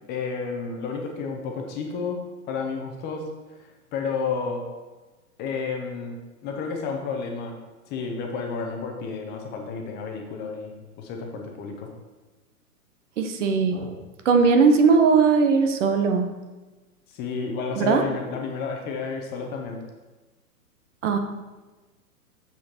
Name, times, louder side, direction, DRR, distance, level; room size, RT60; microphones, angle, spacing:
voice 1, 0.1-3.2 3.5-4.6 5.4-7.6 7.9-11.9 17.1-19.8, left 5 dB, 20° left, 2 dB, 0.9 m, -31 dB
voice 2, 13.2-14.0 14.2-16.3 17.8-18.0 21.0-21.2, right 5 dB, 50° right, 6 dB, 1.1 m, -19 dB
7.3 x 6.3 x 4.4 m, 1.2 s
hypercardioid pair, 125°, 46 cm